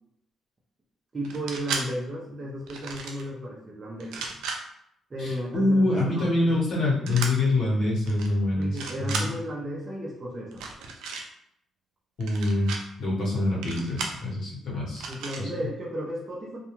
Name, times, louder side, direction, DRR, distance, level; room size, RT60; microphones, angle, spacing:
voice 1, 1.1-4.3 5.1-6.6 8.6-10.6 15.1-16.6, equal, 30° right, -4 dB, 0.6 m, -34 dB
Gun Reloads, 1.2-1.8 2.7-3.2 4.0-4.6 7.1-7.3 8.0-8.3 8.6-9.3 10.5-11.2 12.2-12.8 13.6-14.2 15.0-15.4, right 4 dB, 90° right, 0.4 m, -34 dB
voice 2, 5.2-9.3 12.2-12.7 13.0-15.1 15.4-15.5, left 2 dB, 65° left, -5 dB, 1.0 m, -25 dB
2.3 x 2.2 x 3.0 m, 0.74 s
cardioid pair, 90°, 0 cm